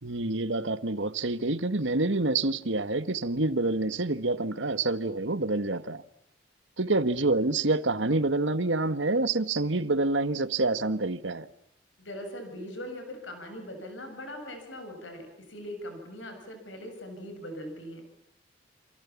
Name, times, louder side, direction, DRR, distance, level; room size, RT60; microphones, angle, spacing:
voice 1, 0.0-6.0 6.8-11.5, right 2 dB, 85° right, 1.5 m, -27 dB
voice 2, 12.0-18.0, equal, 85° left, 7.2 m, -41 dB
28.5 x 28.0 x 7.3 m
head